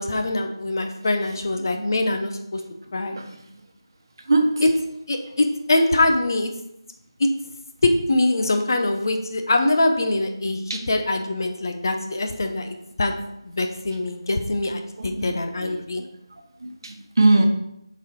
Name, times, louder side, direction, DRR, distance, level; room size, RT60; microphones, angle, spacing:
voice 1, 0.0-2.6 2.9-3.2 4.6-4.7 5.1-6.5 7.2-7.3 7.8-13.1 13.4-16.0, left 2 dB, 45° left, 5 dB, 0.8 m, -23 dB
voice 2, 3.1-3.4 4.3-4.5 10.7-10.8 15.0-15.8 16.6-17.5, right 2 dB, 50° right, 4 dB, 1.1 m, -22 dB
6.9 x 4.1 x 4.6 m, 0.81 s
figure-of-eight pair, 165°, 3 cm